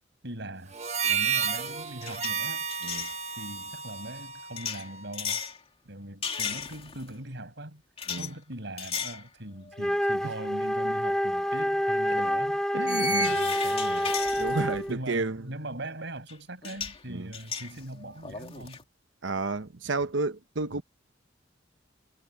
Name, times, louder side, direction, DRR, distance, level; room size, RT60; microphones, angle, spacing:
voice 1, 0.2-0.7 1.1-2.7 3.4-5.4 5.9-7.8 8.2-12.6 13.1-14.2 14.9-18.8, right 1 dB, 65° right, 6.7 m, -41 dB
Harmonica, 0.7-5.3, right 7 dB, 35° right, 1.6 m, -32 dB
sound 1, 1.0-1.3 1.5-3.2 4.6-5.6 6.2-7.1 8.0-8.3 8.8-9.2 9.7-9.8 11.4-11.5 12.9-14.9 16.3-16.4 16.6-17.0 17.3-18.8, left 4 dB, 30° left, 2.7 m, -35 dB
Wind instrument woodwind instrument, 9.7-15.0, equal, 5° left, 3.9 m, -27 dB
voice 2, 12.7-13.4 14.4-15.4 17.1-17.3 19.2-20.8, right 3 dB, 80° right, 1.0 m, -31 dB
head